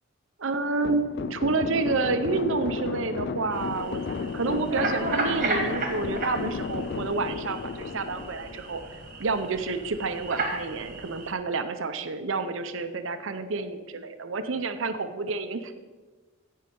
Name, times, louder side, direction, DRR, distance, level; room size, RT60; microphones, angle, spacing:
voice 1, 0.4-8.8 9.2-15.7, right 3 dB, 70° right, 9 dB, 0.7 m, -29 dB
sound 1, 0.8-9.1, left 5 dB, 50° left, 0.3 m, -34 dB
sound 2, 3.5-11.3, right 2 dB, 40° right, 1.7 m, -34 dB
16.0 x 5.5 x 5.4 m, 1.3 s
head